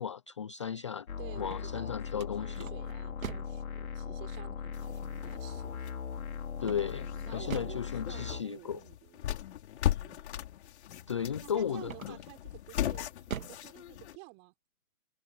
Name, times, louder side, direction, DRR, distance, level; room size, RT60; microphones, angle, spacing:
voice 1, 0.0-1.1 1.4-2.7 6.6-8.8 11.1-12.2, left 8 dB, 25° left, 0.4 m, -35 dB
sound 1, 1.1-8.4, left 7 dB, 75° left, 4.2 m, -39 dB
voice 2, 1.2-5.7 6.7-9.4 10.0-10.3 11.0-13.1 13.5-14.5, right 28 dB, 25° right, 5.7 m, -51 dB
sound 2, 1.3-3.7 6.6-7.9 11.8-12.4 12.9-13.7, right 8 dB, 70° right, 2.7 m, -42 dB
sound 3, 4.7-14.2, left 11 dB, 50° left, 4.0 m, -38 dB
hypercardioid pair, 150°, 42 cm